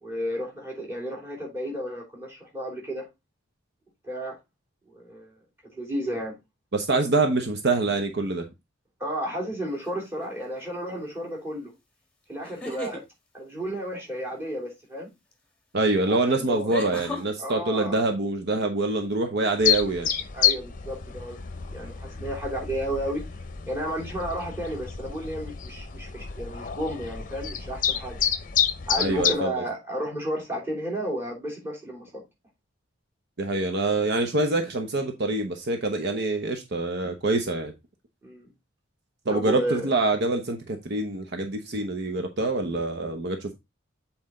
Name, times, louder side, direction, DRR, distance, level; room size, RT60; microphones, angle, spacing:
voice 1, 0.0-3.0 4.0-4.4 4.9-5.3 5.7-6.4 9.0-11.7 12.3-13.0 13.3-15.1 16.0-16.7 17.4-18.0 20.3-23.2 23.7-28.2 28.9-32.2 38.2-38.5 39.3-39.9, equal, 10° right, 3.1 m, -32 dB
voice 2, 6.7-8.5 15.7-20.1 29.0-29.6 33.4-37.7 39.3-43.5, right 2 dB, 55° right, 0.8 m, -25 dB
sound 1, 9.8-10.2 12.4-13.0 15.3-15.4 16.7-17.2, left 2 dB, 5° left, 1.6 m, -35 dB
sound 2, 19.6-29.3, left 9 dB, 40° left, 0.7 m, -29 dB
7.8 x 4.3 x 3.7 m
head